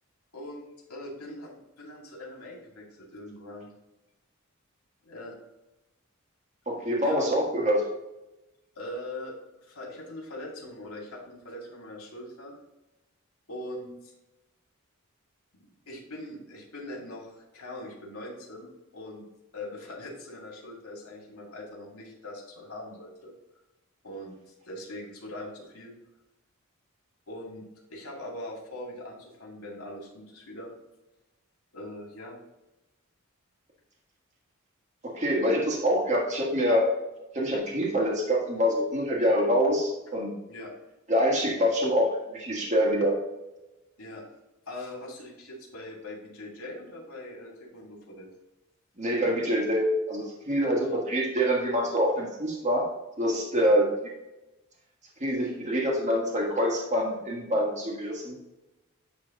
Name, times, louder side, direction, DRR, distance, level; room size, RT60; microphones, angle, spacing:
voice 1, 0.3-3.7 5.0-5.3 7.0-7.3 8.8-12.5 13.5-14.1 15.5-19.2 19.5-23.3 24.0-24.3 24.6-25.9 27.3-27.6 27.9-30.7 31.7-32.4 40.5-40.7 44.0-44.2 44.7-48.3 53.5-53.7, left 1 dB, 90° left, -3 dB, 2.3 m, -41 dB
voice 2, 6.7-7.8 35.0-36.9 37.3-40.4 41.1-43.2 49.0-52.9 53.2-53.9 55.2-58.4, equal, 35° right, -2 dB, 1.5 m, -25 dB
9.6 x 3.3 x 3.8 m, 0.97 s
head